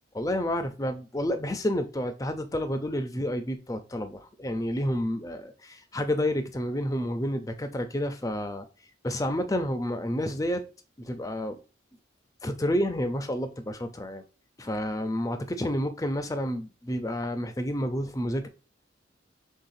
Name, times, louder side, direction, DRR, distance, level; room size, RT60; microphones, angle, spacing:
voice 1, 0.1-8.7 9.0-10.6 11.0-11.6 12.4-14.2 14.6-18.5, equal, 15° left, 0.5 m, -30 dB
5.7 x 3.5 x 2.6 m
head